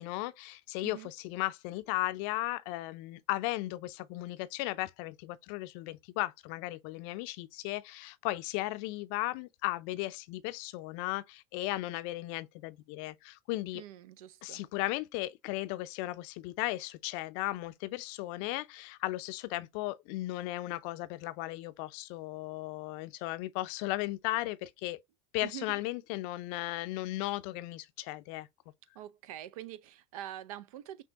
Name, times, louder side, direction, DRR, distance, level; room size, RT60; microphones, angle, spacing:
voice 1, 0.0-13.8 14.4-25.0 25.3-28.5, left 18 dB, 55° left, 0.5 m, -36 dB
voice 2, 13.7-14.6 25.4-25.8 29.0-31.0, right 13 dB, 70° right, 0.5 m, -45 dB
6.1 x 2.2 x 2.8 m
hypercardioid pair, 80°, 19 cm